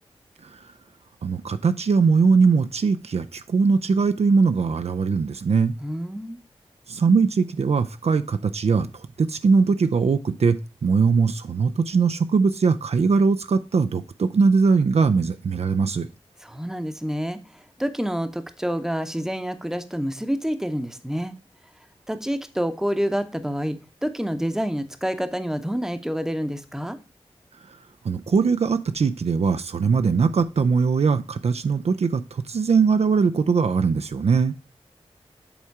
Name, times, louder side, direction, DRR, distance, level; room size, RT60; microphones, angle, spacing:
voice 1, 1.2-5.7 6.9-10.6 10.8-16.1 28.0-34.5, right 5 dB, 65° right, 0.4 m, -21 dB
voice 2, 5.8-6.4 16.4-21.3 22.1-27.0, equal, 5° right, 0.8 m, -28 dB
7.1 x 3.6 x 4.7 m
cardioid pair, 45°, 11 cm